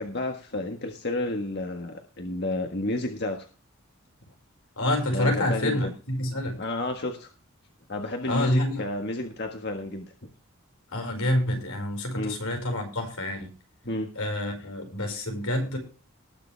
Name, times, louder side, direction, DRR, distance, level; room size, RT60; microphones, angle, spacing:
voice 1, 0.0-3.4 5.1-5.9 6.6-7.3 7.9-10.0 12.1-12.4 13.8-14.1, left 2 dB, 50° left, 3 dB, 1.6 m, -31 dB
voice 2, 4.8-6.6 8.3-8.8 10.9-13.5 14.2-15.8, left 1 dB, 85° left, 3 dB, 5.4 m, -27 dB
19.5 x 7.0 x 3.4 m, 0.35 s
head